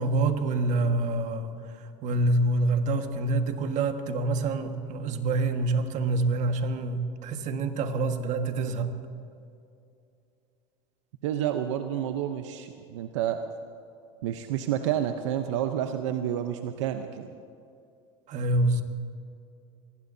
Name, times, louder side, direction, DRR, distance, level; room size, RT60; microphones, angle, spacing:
voice 1, 0.0-1.6 2.0-8.9 18.3-18.8, right 2 dB, 50° right, 6 dB, 1.7 m, -26 dB
voice 2, 11.2-13.4 14.2-17.3, right 10 dB, 80° right, 7 dB, 0.9 m, -29 dB
24.5 x 19.5 x 2.8 m, 2.5 s
supercardioid pair, 95°, 15 cm